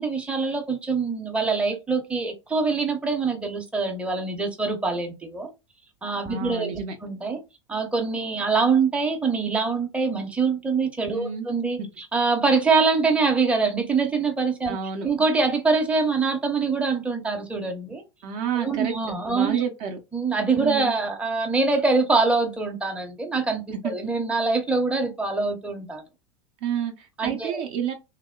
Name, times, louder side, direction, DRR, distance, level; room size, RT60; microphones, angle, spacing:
voice 1, 0.0-5.5 6.0-7.4 7.7-14.8 15.0-18.0 18.6-19.6 20.1-26.0 27.2-27.6, right 4 dB, 10° right, 0.6 m, -24 dB
voice 2, 6.3-7.0 11.1-11.5 14.7-15.1 18.2-18.9 19.3-20.0 20.6-20.9 26.6-27.9, right 7 dB, 50° right, 0.6 m, -29 dB
2.9 x 2.0 x 2.2 m
figure-of-eight pair, 85°, 15 cm